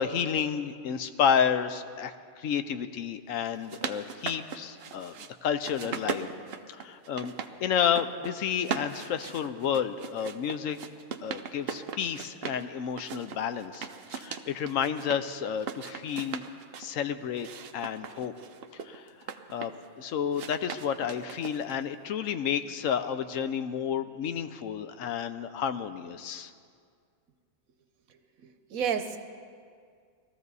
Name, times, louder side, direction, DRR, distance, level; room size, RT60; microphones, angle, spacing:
voice 1, 0.0-6.3 6.7-7.3 7.6-10.8 11.2-16.4 16.8-17.5 17.7-18.3 18.8-19.1 19.5-26.5, left 8 dB, 75° left, 10 dB, 1.0 m, -31 dB
sound 1, 3.4-5.3 5.6-7.5 7.8-8.3 8.6-12.6 13.0-15.2 15.6-16.9 17.4-19.9 20.3-21.8, right 6 dB, 55° right, 0.8 m, -39 dB
voice 2, 28.4-29.2, right 7 dB, 85° right, 8 dB, 1.3 m, -31 dB
20.5 x 14.0 x 4.1 m, 2.1 s
omnidirectional pair, 1.4 m